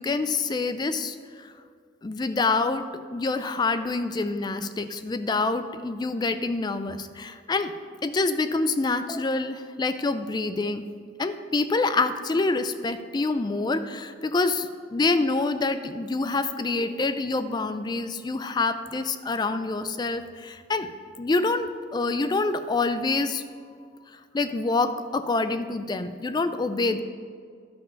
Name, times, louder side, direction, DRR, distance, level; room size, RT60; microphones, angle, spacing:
voice 1, 0.0-1.5 2.0-7.7 8.0-10.9 11.2-20.9 21.2-23.4 24.1-27.0, left 3 dB, 20° left, 11 dB, 0.3 m, -26 dB
12.0 x 5.4 x 5.2 m, 2.1 s
head